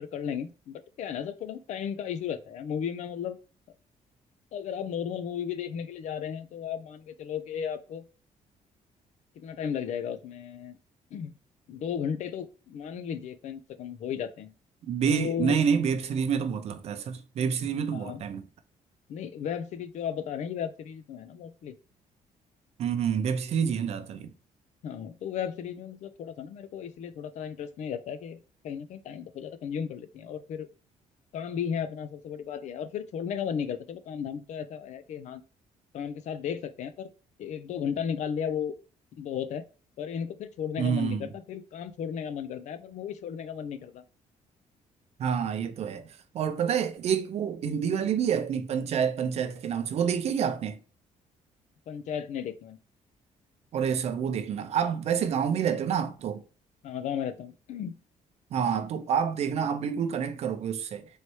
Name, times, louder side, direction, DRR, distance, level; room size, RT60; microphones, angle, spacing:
voice 1, 0.0-3.4 4.5-8.0 9.4-10.8 11.1-11.3 11.7-14.5 15.1-15.6 17.9-18.2 19.1-21.7 24.8-30.7 31.3-35.4 35.9-37.1 37.4-38.7 39.1-39.6 40.0-44.0 47.6-47.8 51.9-52.8 56.8-58.0, left 8 dB, 60° left, 0.5 m, -35 dB
voice 2, 14.8-18.4 22.8-24.3 40.8-41.3 45.2-46.1 46.3-50.8 53.7-56.4 58.5-61.1, right 7 dB, 50° right, 0.6 m, -28 dB
4.2 x 3.2 x 3.0 m
cardioid pair, 180°, 13 cm